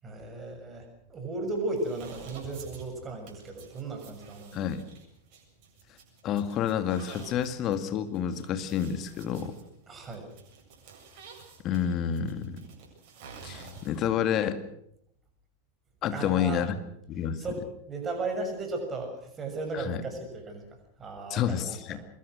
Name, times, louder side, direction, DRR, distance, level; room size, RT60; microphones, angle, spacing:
voice 1, 0.0-4.6 9.9-10.3 16.1-16.6 17.4-17.6 17.9-20.7 21.0-21.8, right 2 dB, 20° right, 4 dB, 6.8 m, -35 dB
sound 1, 1.7-14.2, right 4 dB, 45° right, 7.6 m, -50 dB
voice 2, 4.5-4.8 6.2-9.6 11.6-12.7 13.4-14.6 16.0-16.8 17.1-17.4 19.7-20.0 21.3-22.0, left 9 dB, 35° left, 9 dB, 2.2 m, -29 dB
24.5 x 22.0 x 6.5 m, 0.74 s
figure-of-eight pair, 90°, 0 cm